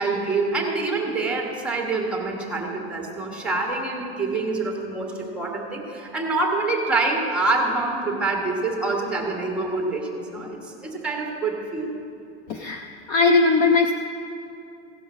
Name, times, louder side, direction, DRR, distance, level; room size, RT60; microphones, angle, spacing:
voice 1, 0.0-12.0, right 3 dB, 5° right, 0 dB, 1.4 m, -26 dB
voice 2, 12.5-13.9, left 3 dB, 30° left, 4 dB, 0.5 m, -19 dB
16.5 x 5.5 x 6.1 m, 2.6 s
supercardioid pair, 150°, 33 cm